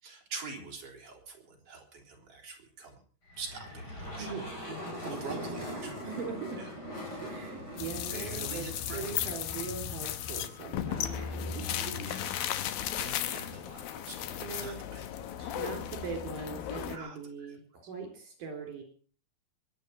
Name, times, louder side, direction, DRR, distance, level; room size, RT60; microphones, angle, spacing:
voice 1, 0.0-3.0 3.4-4.3 5.1-5.9 6.6-6.7 7.1-7.2 8.1-9.1 11.1-11.4 11.7-12.5 13.0-15.1 15.4-15.5 16.9-17.2, right 4 dB, 40° right, 1 dB, 4.6 m, -45 dB
sound 1, 3.3-9.7, equal, 25° left, 5.4 m, -42 dB
voice 2, 4.2-6.6 7.2-12.1 14.4-14.8 15.5-18.8, right 5 dB, 65° right, 4 dB, 5.4 m, -41 dB
sound 2, 7.8-17.0, left 10 dB, 85° left, 2.9 m, -35 dB
22.5 x 9.5 x 5.9 m, 0.42 s
omnidirectional pair, 4.1 m